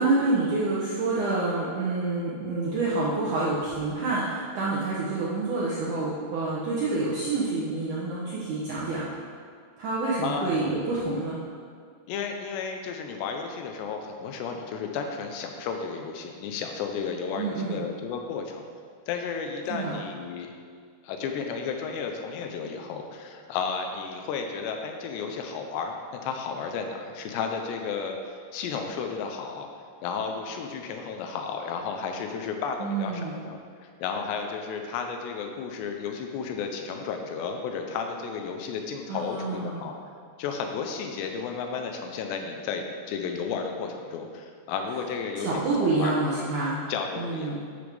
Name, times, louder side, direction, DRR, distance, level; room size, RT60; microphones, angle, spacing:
voice 1, 0.0-9.1 9.8-11.4 17.4-17.8 19.7-20.0 32.8-33.4 39.1-39.8 45.4-46.8 47.2-47.6, right 3 dB, 75° right, -6 dB, 1.9 m, -27 dB
voice 2, 10.2-10.5 12.1-18.7 19.1-20.5 21.0-28.2 28.5-29.7 30.0-39.9 40.4-45.5 45.8-46.1 46.9-47.6, left 5 dB, 85° left, 4 dB, 2.9 m, -33 dB
12.0 x 6.8 x 3.4 m, 2.1 s
omnidirectional pair, 5.0 m